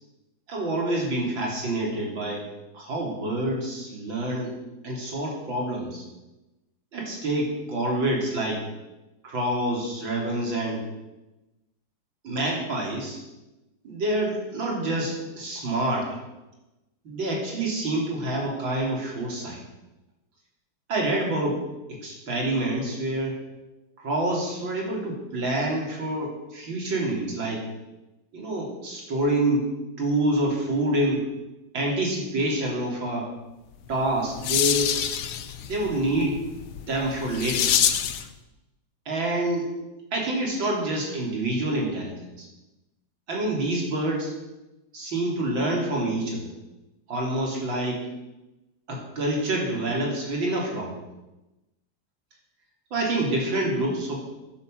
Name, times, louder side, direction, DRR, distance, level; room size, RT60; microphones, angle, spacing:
voice 1, 0.5-2.5 2.7-4.5 4.8-6.0 6.9-8.7 9.2-10.9 12.2-13.2 13.8-16.2 17.0-19.6 20.9-21.6 21.9-23.4 24.0-27.7 28.3-29.7 30.0-31.3 31.7-33.3 33.9-34.9 35.7-36.4 36.9-37.8 39.1-39.7 40.1-42.5 43.3-44.3 44.9-46.5 47.1-48.1 48.9-50.9 52.9-54.2, right 1 dB, 70° right, -1 dB, 4.1 m, -27 dB
sound 1, 33.9-38.3, left 9 dB, 80° left, 1.7 m, -27 dB
12.5 x 10.5 x 7.8 m, 1.0 s
omnidirectional pair, 2.2 m